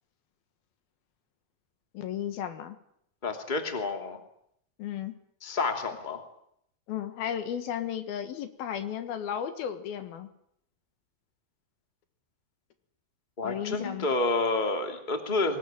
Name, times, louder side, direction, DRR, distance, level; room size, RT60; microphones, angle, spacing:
voice 1, 1.9-2.8 4.8-5.1 6.9-10.3 13.4-14.1, left 9 dB, 75° left, 9 dB, 3.3 m, -34 dB
voice 2, 3.2-4.2 5.4-6.2 13.4-15.6, left 3 dB, 15° left, 5 dB, 2.4 m, -29 dB
22.5 x 20.0 x 9.1 m, 0.73 s
omnidirectional pair, 4.4 m